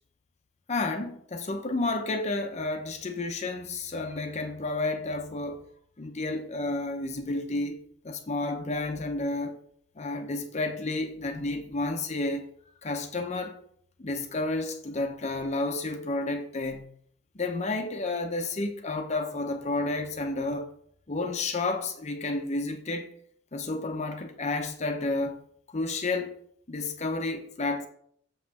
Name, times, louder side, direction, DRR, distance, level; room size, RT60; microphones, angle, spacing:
voice 1, 0.7-5.6 6.0-9.6 10.0-12.5 12.8-13.6 14.0-16.9 17.3-20.7 21.1-23.1 23.5-25.4 25.7-26.3 26.7-27.9, left 2 dB, 35° left, 0.6 m, -31 dB
7.4 x 3.1 x 5.9 m
head